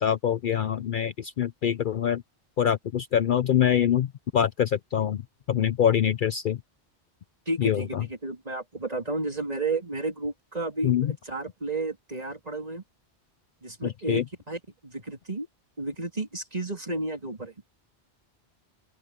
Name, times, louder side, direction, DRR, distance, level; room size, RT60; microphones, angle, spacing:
voice 1, 0.0-2.2 2.6-5.2 5.5-6.6 7.6-8.0 10.8-11.1 13.8-14.2, left 9 dB, 60° left, 0.7 m, -24 dB
voice 2, 7.5-12.8 13.6-15.5 15.8-17.5, right 2 dB, 35° right, 3.5 m, -32 dB
open air
omnidirectional pair, 1.1 m